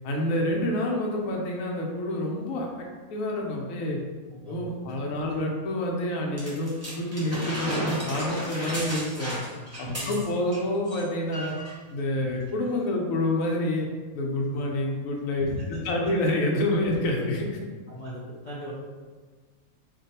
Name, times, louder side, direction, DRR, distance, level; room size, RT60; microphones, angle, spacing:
voice 1, 0.0-4.0 4.4-9.4 9.8-11.5 11.9-13.9 14.1-17.6, left 1 dB, 70° left, 0 dB, 0.9 m, -28 dB
voice 2, 4.3-4.7 5.3-5.4 9.9-10.2 14.5-14.7 15.5-16.1 17.9-18.7, equal, 55° left, -9 dB, 0.5 m, -38 dB
sound 1, 6.4-10.6 10.9-11.0 11.3-11.8 12.5-12.6, equal, 15° right, 0.5 m, -33 dB
2.6 x 2.3 x 4.0 m, 1.4 s
omnidirectional pair, 1.6 m